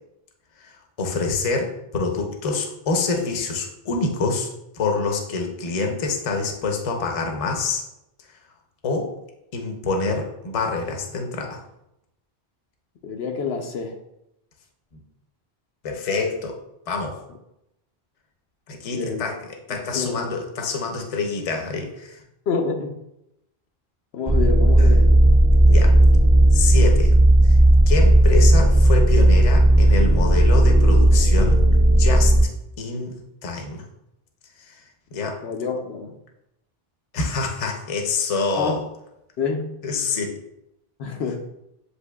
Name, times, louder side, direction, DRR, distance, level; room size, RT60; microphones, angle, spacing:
voice 1, 0.6-4.5 4.7-7.8 8.8-9.1 9.5-11.6 14.9-15.0 15.8-16.6 16.9-17.2 18.7-22.2 24.8-24.9 25.7-26.0 26.5-27.2 27.4-27.6 27.9-31.6 31.9-32.3 32.8-33.2 33.4-33.8 34.6-34.8 35.1-35.4 37.1-38.8 39.8-40.4, left 4 dB, 40° left, 2 dB, 0.6 m, -26 dB
voice 2, 13.0-14.0 18.9-19.2 19.9-20.2 22.5-23.0 24.1-25.2 35.4-36.1 38.6-38.8 39.4-39.8 41.0-41.4, left 4 dB, 85° left, 3 dB, 0.9 m, -27 dB
sound 1, 24.3-32.4, right 1 dB, 25° right, 0.4 m, -14 dB
7.9 x 2.7 x 2.2 m, 0.85 s
omnidirectional pair, 1.1 m